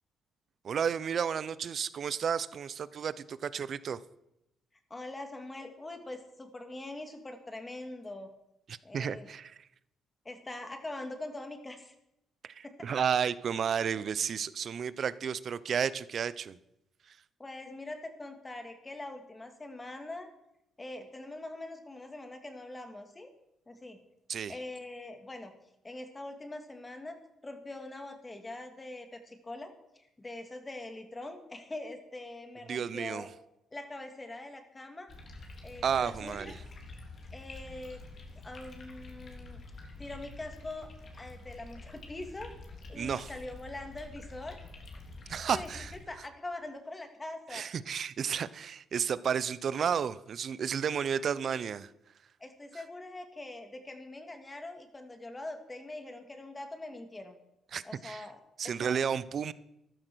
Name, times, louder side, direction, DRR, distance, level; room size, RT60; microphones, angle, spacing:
voice 1, 0.6-4.0 8.7-9.6 12.4-16.6 17.1-17.2 24.3-24.5 32.7-33.3 35.8-36.5 42.9-43.3 45.3-45.9 47.5-51.9 57.7-58.3 58.6-59.5, right 7 dB, 55° right, 17 dB, 0.7 m, -32 dB
voice 2, 4.9-8.3 8.8-9.3 10.2-11.9 12.6-12.9 17.4-20.3 20.8-23.3 23.7-24.0 24.5-25.5 25.8-27.2 27.4-33.3 33.7-35.1 35.6-36.6 37.3-38.0 38.4-39.6 40.0-42.5 42.9-44.6 45.5-47.7 51.4-51.6 52.4-57.4 57.8-59.0, left 2 dB, 20° left, 6 dB, 2.5 m, -43 dB
sound 1, 35.1-46.1, left 2 dB, 50° left, 3.5 m, -47 dB
14.5 x 12.0 x 6.3 m, 0.85 s
cardioid pair, 90°, 0 cm